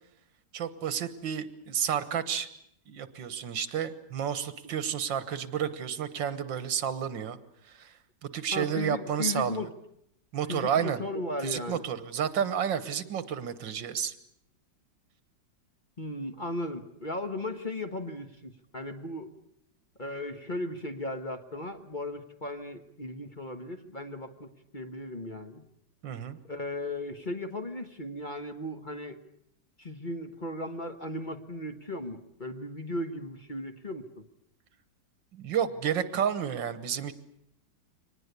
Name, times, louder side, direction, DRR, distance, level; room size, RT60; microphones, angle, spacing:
voice 1, 0.5-2.5 2.9-7.4 7.7-7.9 8.2-9.7 10.3-11.0 11.4-14.1 26.0-26.4 35.3-37.1, right 8 dB, 85° right, 13 dB, 1.9 m, -31 dB
voice 2, 8.5-9.7 10.5-11.8 16.0-19.3 20.0-25.6 26.5-29.2 29.8-34.1, left 1 dB, 30° left, 6 dB, 1.4 m, -36 dB
24.0 x 19.5 x 8.2 m, 0.74 s
omnidirectional pair, 2.0 m